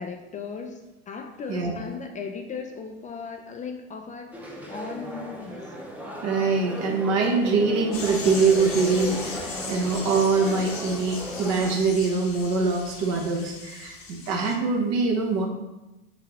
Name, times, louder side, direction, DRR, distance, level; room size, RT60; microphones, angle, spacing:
voice 1, 0.0-4.4 4.7-5.7, left 5 dB, 25° left, 4 dB, 0.4 m, -37 dB
voice 2, 1.5-1.9 6.2-15.5, right 4 dB, 55° right, 1 dB, 1.0 m, -24 dB
sound 1, 4.3-11.8, equal, 5° right, 0.8 m, -36 dB
sound 2, 7.9-14.5, left 4 dB, 45° left, 1.0 m, -38 dB
5.9 x 2.8 x 3.0 m, 1.0 s
hypercardioid pair, 80°, 32 cm